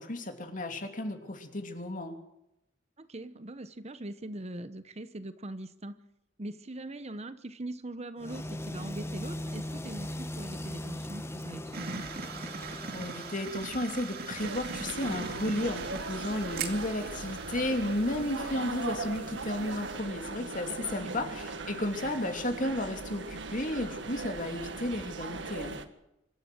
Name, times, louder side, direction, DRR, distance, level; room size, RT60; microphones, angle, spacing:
voice 1, 0.0-2.2 12.9-25.8, left 1 dB, 45° left, 5 dB, 2.9 m, -33 dB
voice 2, 3.0-6.0 6.4-12.1 20.9-21.2, right 1 dB, 35° right, 12 dB, 1.0 m, -41 dB
sound 1, 8.2-13.5, left 1 dB, 15° left, 1.0 m, -39 dB
sound 2, 11.7-20.0, right 4 dB, 55° right, 2.4 m, -41 dB
sound 3, 14.4-25.9, right 3 dB, 70° right, 1.7 m, -39 dB
25.5 x 13.0 x 7.9 m, 0.85 s
head